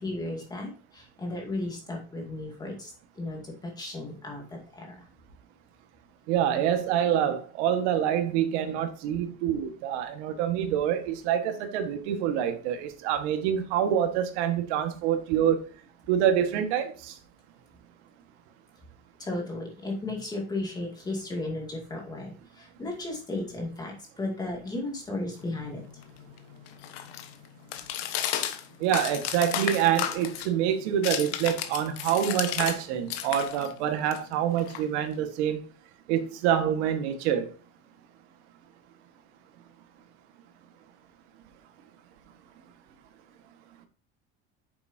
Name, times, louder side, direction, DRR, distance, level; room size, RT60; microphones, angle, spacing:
voice 1, 0.0-2.9 3.2-4.4 4.8-5.0 19.2-25.8, left 2 dB, 10° left, 2.4 m, -34 dB
voice 2, 6.3-15.6 16.1-17.1 28.8-35.6 36.1-37.5, right 9 dB, 90° right, 1.7 m, -26 dB
sound 1, 25.4-32.8 33.1-35.3, left 11 dB, 70° left, 1.3 m, -34 dB
9.5 x 7.1 x 2.8 m
cardioid pair, 170°, 33 cm